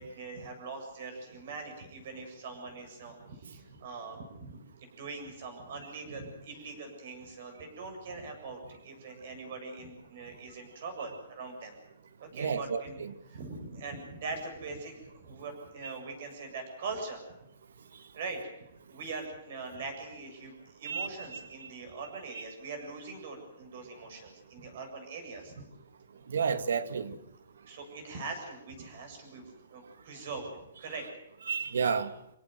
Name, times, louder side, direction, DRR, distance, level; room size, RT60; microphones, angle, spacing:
voice 1, 0.0-11.8 12.2-13.0 13.3-17.2 18.1-18.4 18.9-25.6 27.7-30.5 30.8-31.1, right 4 dB, 45° right, 5 dB, 7.5 m, -42 dB
voice 2, 12.4-13.1 15.8-15.9 20.8-21.1 21.6-21.7 22.3-22.4 26.3-27.1 31.5-32.1, right 6 dB, 80° right, 11 dB, 2.0 m, -31 dB
25.5 x 17.5 x 7.7 m, 0.86 s
hypercardioid pair, 175°, 0 cm